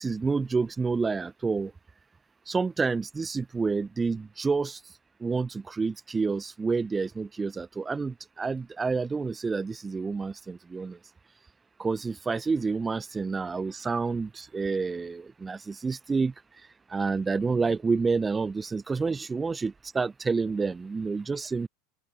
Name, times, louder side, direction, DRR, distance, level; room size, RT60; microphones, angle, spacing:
voice 1, 0.0-1.7 2.5-4.8 5.2-11.0 11.8-16.3 16.9-21.7, right 4 dB, 20° right, 2.0 m, -29 dB
open air
hypercardioid pair, 90°, 0 cm